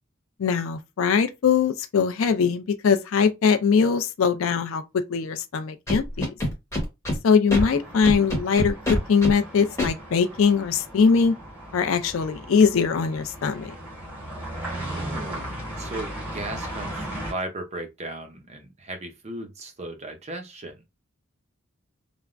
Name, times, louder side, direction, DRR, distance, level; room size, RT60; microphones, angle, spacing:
voice 1, 0.4-4.8 5.1-6.3 7.2-11.3 11.7-13.7, left 6 dB, 70° left, 0.4 m, -21 dB
Scratching (performance technique), 5.9-7.2 7.5-7.6 8.0-9.3 9.8-9.9, left 1 dB, 15° left, 1.1 m, -25 dB
sound 1, 7.6-17.3, right 1 dB, 10° right, 1.5 m, -37 dB
voice 2, 14.7-20.8, right 2 dB, 30° right, 0.6 m, -36 dB
3.3 x 2.0 x 2.4 m
head